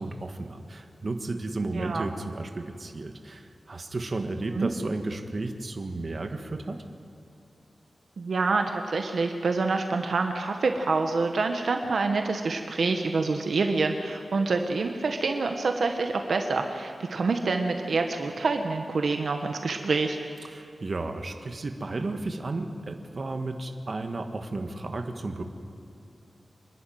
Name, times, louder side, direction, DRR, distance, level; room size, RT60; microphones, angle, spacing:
voice 1, 0.0-6.8 20.4-25.4, right 2 dB, 45° right, 5 dB, 1.5 m, -33 dB
voice 2, 1.7-2.1 4.5-4.7 8.2-20.2, right 3 dB, 70° right, 5 dB, 1.2 m, -27 dB
26.0 x 11.5 x 9.3 m, 2.5 s
wide cardioid pair, 120°, 0 cm